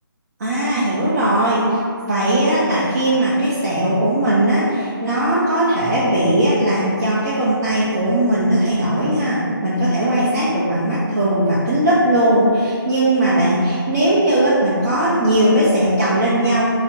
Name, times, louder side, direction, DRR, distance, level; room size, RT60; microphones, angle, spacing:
voice 1, 0.4-1.8 2.1-16.7, right 1 dB, 40° right, -8 dB, 0.6 m, -18 dB
4.3 x 2.0 x 2.6 m, 2.2 s
figure-of-eight pair, 155°, 12 cm